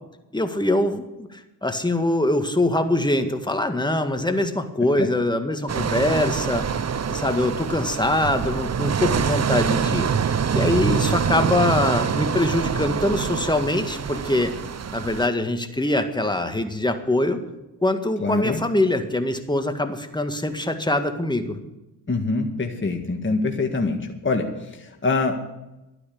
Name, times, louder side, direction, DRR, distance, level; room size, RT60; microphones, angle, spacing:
voice 1, 0.3-6.7 7.1-10.1 10.5-14.5 14.9-17.4 17.8-21.6, left 1 dB, 10° left, 7 dB, 1.8 m, -23 dB
sound 1, 5.7-15.3, right 7 dB, 35° right, 0.8 m, -25 dB
voice 2, 18.2-18.6 22.1-25.4, left 3 dB, 25° left, 3 dB, 1.9 m, -24 dB
12.0 x 9.9 x 8.5 m, 0.98 s
cardioid pair, 65°, 43 cm